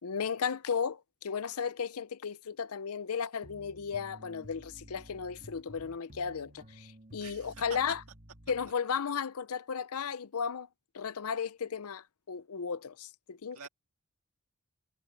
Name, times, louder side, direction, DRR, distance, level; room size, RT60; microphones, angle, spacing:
voice 1, 0.0-8.0 8.5-10.7 10.9-13.7, left 6 dB, 70° left, 0.6 m, -35 dB
sound 1, 3.4-8.7, equal, 40° right, 2.3 m, -53 dB
voice 2, 7.2-7.6 13.5-13.7, right 6 dB, 70° right, 1.9 m, -49 dB
head